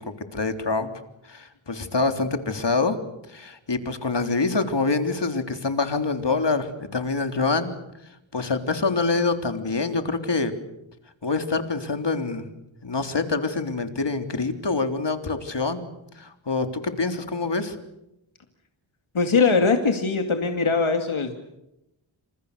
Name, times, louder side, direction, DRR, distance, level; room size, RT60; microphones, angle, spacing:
voice 1, 0.3-0.9 1.3-3.0 3.3-7.7 8.3-10.5 11.2-12.5 12.8-15.8 16.2-17.8, left 3 dB, 60° left, 7 dB, 3.5 m, -25 dB
voice 2, 19.1-21.3, left 4 dB, 75° left, 5 dB, 2.5 m, -21 dB
28.5 x 28.0 x 6.8 m, 0.87 s
wide cardioid pair, 60°, 48 cm